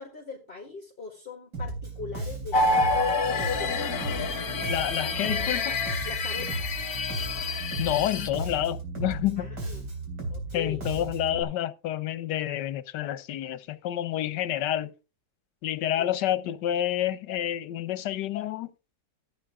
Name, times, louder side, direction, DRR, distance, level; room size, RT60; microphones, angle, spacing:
voice 1, 0.0-3.8 6.1-6.7 9.4-9.9 10.3-10.8 16.0-16.1, left 4 dB, 35° left, 1.8 m, -41 dB
Bass guitar, 1.5-11.4, right 2 dB, 80° right, 3.9 m, -35 dB
sound 1, 2.5-8.3, left 3 dB, 60° left, 1.6 m, -28 dB
voice 2, 4.7-5.8 7.8-9.5 10.5-14.9 15.6-18.7, left 12 dB, 80° left, 1.4 m, -29 dB
14.0 x 8.8 x 3.6 m
omnidirectional pair, 1.8 m